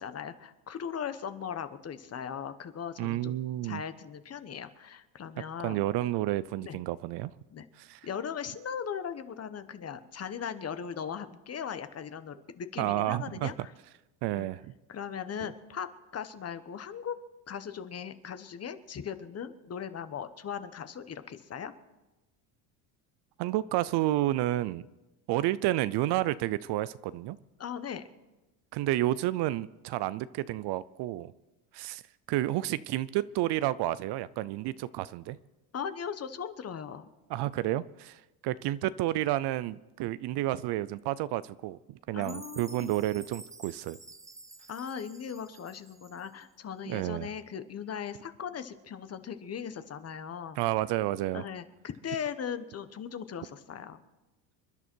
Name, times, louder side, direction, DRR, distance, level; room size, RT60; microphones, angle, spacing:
voice 1, 0.0-5.8 6.6-6.8 7.5-7.6 8.0-13.7 14.4-14.5 14.9-15.9 16.1-17.2 17.5-21.7 27.6-28.0 35.7-37.1 42.1-42.9 44.7-50.6 51.3-54.0, left 7 dB, 30° left, 11 dB, 1.1 m, -38 dB
voice 2, 3.0-3.8 5.6-7.3 7.8-8.0 12.8-13.5 14.2-14.7 23.4-24.9 25.3-27.4 28.7-31.3 31.7-32.0 32.3-35.4 37.3-44.0 46.9-47.3 50.6-51.4, right 15 dB, 55° right, 17 dB, 0.6 m, -30 dB
Chime, 42.2-46.4, right 2 dB, 5° right, 0.6 m, -50 dB
27.5 x 11.0 x 4.5 m, 1.1 s
supercardioid pair, 115°, 50 cm